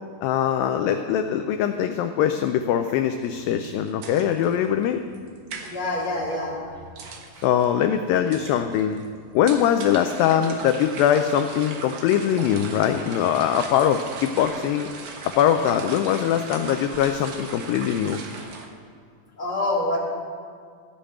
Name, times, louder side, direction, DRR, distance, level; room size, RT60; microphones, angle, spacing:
voice 1, 0.2-5.0 7.4-9.0 9.3-14.9 15.2-18.2, left 9 dB, 85° left, 7 dB, 2.0 m, -22 dB
sound 1, 3.2-18.7, right 4 dB, 70° right, 1.6 m, -39 dB
voice 2, 5.7-6.6 19.4-20.0, left 2 dB, 15° left, -6 dB, 2.3 m, -26 dB
15.0 x 5.2 x 8.6 m, 2.1 s
omnidirectional pair, 4.5 m